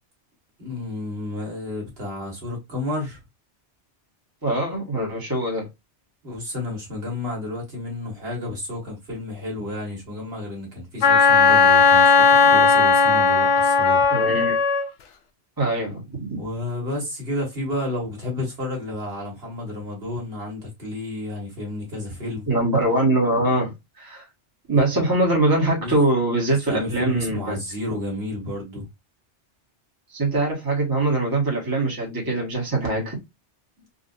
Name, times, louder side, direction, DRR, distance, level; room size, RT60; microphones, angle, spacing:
voice 1, 0.6-3.2 6.2-14.0 16.4-22.5 25.8-25.9 26.7-28.9 33.8-33.9, left 1 dB, 60° right, 1.7 m, -31 dB
voice 2, 4.4-5.7 14.1-14.6 15.6-16.4 22.5-24.2 24.7-27.6 30.1-33.2, right 2 dB, 20° right, 1.3 m, -22 dB
Wind instrument woodwind instrument, 11.0-14.9, left 4 dB, 85° left, 1.0 m, -16 dB
3.8 x 2.5 x 2.5 m
omnidirectional pair, 1.2 m